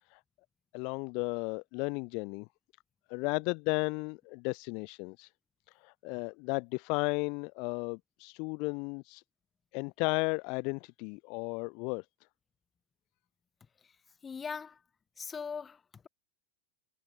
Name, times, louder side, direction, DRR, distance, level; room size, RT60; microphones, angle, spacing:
voice 1, 0.7-2.5 3.1-5.3 5.8-9.2 9.7-12.0, left 32 dB, 45° left, 0.6 m, -34 dB
voice 2, 14.2-14.8 15.2-16.1, left 6 dB, 20° left, 3.9 m, -40 dB
figure-of-eight pair, 90°, 0 cm